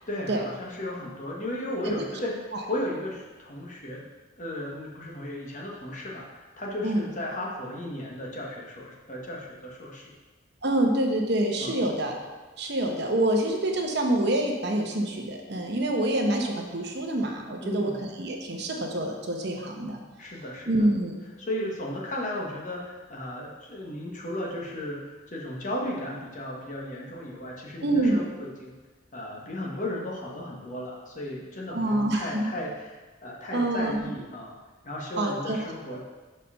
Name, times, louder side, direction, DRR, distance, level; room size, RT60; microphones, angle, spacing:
voice 1, 0.1-4.0 4.4-10.0 11.6-11.8 17.6-17.9 20.2-20.9 21.4-28.8 29.1-34.5 34.8-36.0, left 1 dB, 40° left, -3 dB, 1.3 m, -35 dB
voice 2, 10.6-12.1 12.6-20.0 20.7-21.1 27.8-28.2 31.7-32.5 33.5-34.0 35.2-35.6, right 1 dB, 60° right, 2 dB, 0.9 m, -26 dB
5.4 x 4.9 x 5.6 m, 1.3 s
head